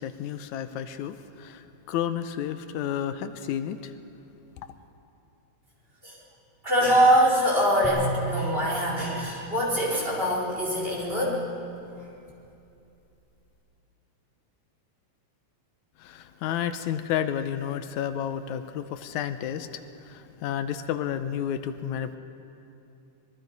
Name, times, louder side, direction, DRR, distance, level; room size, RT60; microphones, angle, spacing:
voice 1, 0.0-3.9 16.0-19.8 20.1-22.2, left 9 dB, 85° left, 11 dB, 2.1 m, -31 dB
voice 2, 6.6-11.4, equal, 20° right, -5 dB, 4.3 m, -23 dB
sound 1, 7.8-11.1, right 2 dB, 5° left, 5.5 m, -36 dB
25.0 x 22.0 x 5.3 m, 2.7 s
omnidirectional pair, 3.3 m